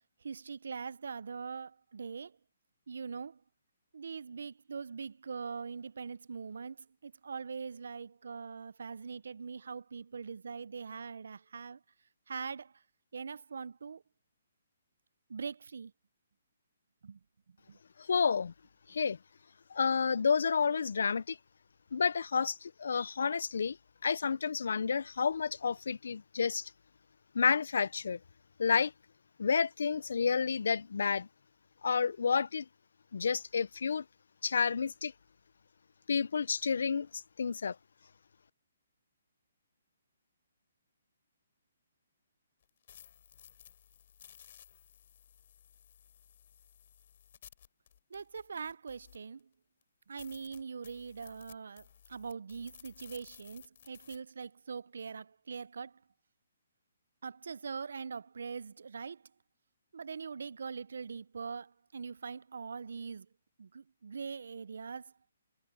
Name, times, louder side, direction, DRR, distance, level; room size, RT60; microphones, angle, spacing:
voice 1, 0.2-2.4 2.9-3.4 3.9-11.8 12.3-12.7 13.1-14.0 15.3-15.9 17.0-17.2 17.5-17.8 48.1-49.5 50.1-56.0 57.2-59.2 59.9-63.3 63.6-65.1, right 5 dB, 65° right, 0.4 m, -42 dB
voice 2, 18.0-18.5 18.9-19.2 19.7-21.4 21.9-23.8 24.0-26.7 27.3-28.2 28.6-28.9 29.4-31.3 31.8-32.7 33.1-34.0 34.4-35.1 36.1-37.8, left 6 dB, 60° left, 0.3 m, -30 dB
sound 1, 42.6-49.4 49.8-49.9 50.2-54.2, left 9 dB, 35° left, 4.9 m, -57 dB
hypercardioid pair, 180°, 0 cm